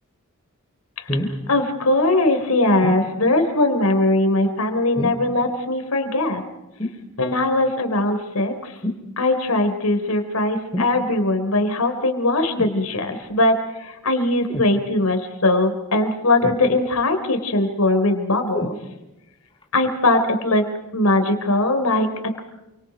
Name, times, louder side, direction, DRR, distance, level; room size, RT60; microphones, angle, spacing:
sound 1, 1.1-1.4 2.8-3.1 4.9-5.3 6.8-7.0 8.8-9.1 10.7-11.0 12.5-12.8 14.5-14.7 16.4-17.0 18.5-18.8 19.6-19.7, equal, 20° left, 2.8 m, -27 dB
voice 1, 1.5-6.4 7.2-8.8 9.2-18.8 19.7-20.6 20.9-22.4, left 2 dB, 90° left, 6 dB, 3.5 m, -20 dB
27.5 x 26.0 x 5.0 m, 0.96 s
head